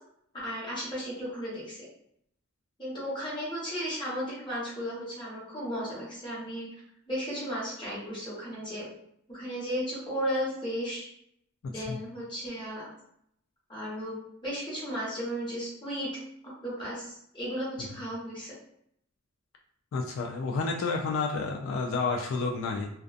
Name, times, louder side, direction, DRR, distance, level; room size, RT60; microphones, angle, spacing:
voice 1, 0.3-1.8 2.8-6.7 7.1-8.9 9.3-11.1 11.6-12.9 13.7-16.1 16.6-18.5, equal, 25° left, -7 dB, 1.0 m, -35 dB
voice 2, 19.9-22.9, left 4 dB, 75° left, 1 dB, 0.3 m, -30 dB
2.5 x 2.2 x 2.4 m, 0.72 s
head